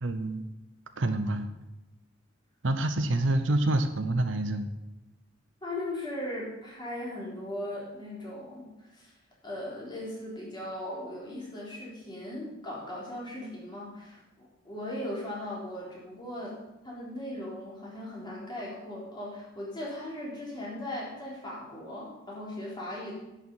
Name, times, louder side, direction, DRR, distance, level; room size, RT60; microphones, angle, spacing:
voice 1, 0.0-0.4 1.0-1.5 2.6-4.7, right 1 dB, 70° right, 8 dB, 0.8 m, -27 dB
voice 2, 5.6-9.1 9.4-16.6 16.8-23.1, left 1 dB, 25° left, -5 dB, 3.9 m, -38 dB
10.5 x 6.9 x 5.6 m, 0.97 s
head